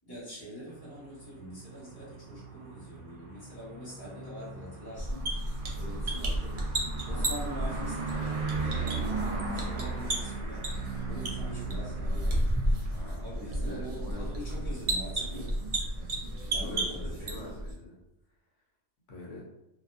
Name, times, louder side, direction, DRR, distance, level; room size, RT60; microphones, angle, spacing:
voice 1, 0.0-5.4 5.7-6.6 7.1-10.7 11.1-12.4 13.2-15.6 16.5-17.5, equal, 20° left, -9 dB, 1.1 m, -44 dB
sound 1, 0.7-16.7, right 5 dB, 70° right, 0.9 m, -39 dB
sound 2, 5.0-17.7, right 1 dB, 55° right, 0.4 m, -33 dB
voice 2, 12.9-14.6 16.4-17.9 19.1-19.4, left 1 dB, 80° left, -3 dB, 1.0 m, -44 dB
2.5 x 2.5 x 2.4 m, 0.92 s
omnidirectional pair, 1.2 m